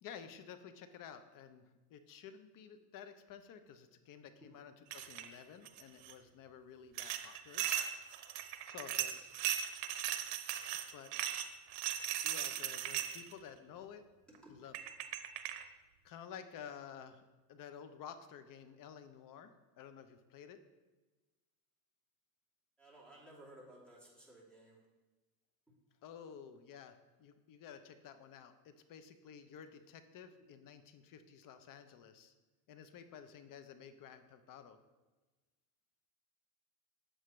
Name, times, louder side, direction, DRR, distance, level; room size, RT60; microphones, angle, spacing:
voice 1, 0.0-1.6 1.9-7.6 8.0-8.2 8.7-9.1 10.9-11.1 12.2-14.0 14.5-14.8 16.0-20.6 26.0-32.3 32.7-34.8, left 8 dB, 45° left, 9 dB, 0.8 m, -52 dB
sound 1, 4.9-5.3 5.6-6.1 7.0-13.3 14.3-14.4 14.7-15.6, right 11 dB, 65° right, 0.8 m, -38 dB
voice 2, 22.8-24.8, right 1 dB, ahead, -5 dB, 2.9 m, -57 dB
8.0 x 7.7 x 3.2 m, 1.2 s
supercardioid pair, 110°, 46 cm